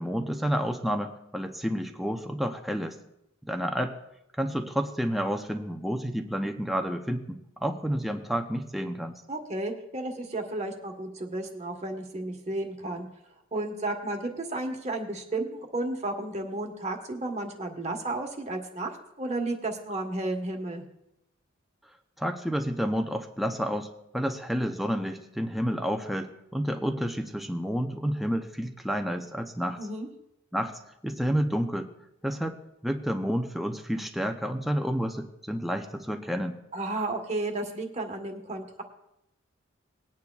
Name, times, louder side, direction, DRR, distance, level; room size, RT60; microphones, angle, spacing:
voice 1, 0.0-3.0 3.4-4.0 4.4-9.1 22.2-23.9 24.1-29.8 30.5-31.9 32.2-32.6 32.8-36.6, equal, ahead, 3 dB, 0.6 m, -30 dB
voice 2, 9.3-13.1 13.5-20.8 29.8-30.1 36.7-38.8, right 2 dB, 35° right, 4 dB, 1.3 m, -33 dB
20.0 x 9.4 x 2.4 m, 0.83 s
head